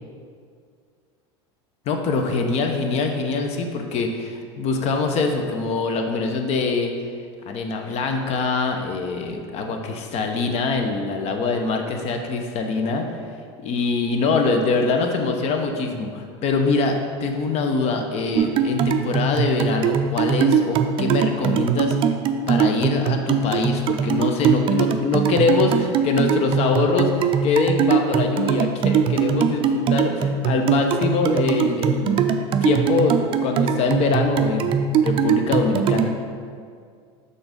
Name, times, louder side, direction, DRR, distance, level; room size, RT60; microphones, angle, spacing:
voice 1, 1.9-6.9 7.5-13.1 13.6-22.0 22.5-32.2 32.6-34.8 35.0-36.1, left 3 dB, 45° left, 4 dB, 0.8 m, -23 dB
sound 1, 18.4-36.1, right 6 dB, 35° right, 0.4 m, -22 dB
5.9 x 3.8 x 5.2 m, 2.1 s
supercardioid pair, 100°, 15 cm